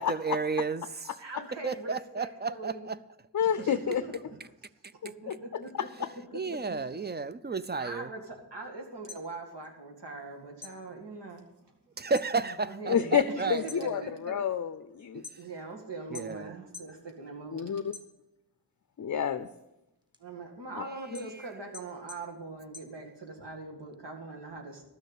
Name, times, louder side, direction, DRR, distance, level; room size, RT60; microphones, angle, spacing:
voice 1, 0.0-1.2 1.6-3.0 6.3-8.1 12.0-14.1 15.1-15.4 16.1-16.5 21.3-21.5, right 4 dB, 25° right, 14 dB, 0.4 m, -33 dB
voice 2, 1.2-2.9 3.4-4.4 5.0-5.9 6.3-6.9 7.8-11.4 12.6-14.4 15.4-17.7 20.2-24.9, right 3 dB, 80° right, 2 dB, 2.2 m, -42 dB
voice 3, 3.3-4.0 5.3-5.6 12.9-15.2 17.5-17.9 19.0-19.5 20.8-20.9, left 8 dB, 45° left, 12 dB, 0.5 m, -29 dB
sound 1, 9.0-10.3 10.6-12.3 12.7-13.1 13.5-15.7 16.1-17.0 17.4-18.6 19.0-23.5, left 4 dB, 10° right, 1.3 m, -49 dB
12.5 x 6.6 x 8.2 m, 0.92 s
wide cardioid pair, 115°, 41 cm